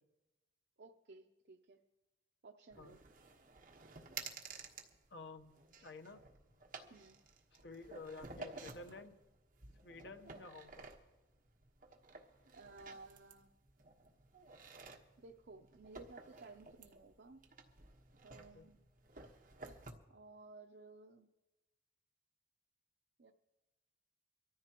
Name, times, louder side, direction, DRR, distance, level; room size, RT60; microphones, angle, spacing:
voice 1, 0.8-1.8 2.4-3.0 6.9-7.2 12.5-13.5 15.2-17.4 18.2-18.8 20.1-21.3 23.2-23.3, right 3 dB, 65° right, 4 dB, 0.6 m, -57 dB
sound 1, 2.7-19.9, right 4 dB, 45° right, 1.3 m, -54 dB
voice 2, 5.1-6.2 7.5-9.1 9.8-10.9 18.4-18.7, left 3 dB, 65° left, 7 dB, 1.0 m, -52 dB
24.0 x 14.0 x 3.0 m, 1.1 s
head